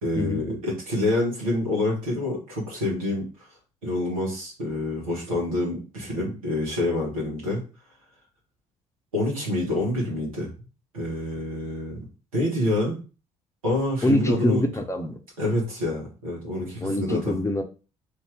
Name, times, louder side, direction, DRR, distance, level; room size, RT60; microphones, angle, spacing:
voice 1, 0.0-3.5 3.8-7.6 9.1-10.5 10.9-12.0 12.3-13.0 13.6-14.6 15.4-17.3, left 1 dB, 85° right, -4 dB, 1.6 m, -27 dB
voice 2, 14.0-15.2 16.8-17.6, left 1 dB, 15° left, 5 dB, 0.8 m, -24 dB
3.4 x 2.8 x 3.5 m, 0.34 s
figure-of-eight pair, 50°, 17 cm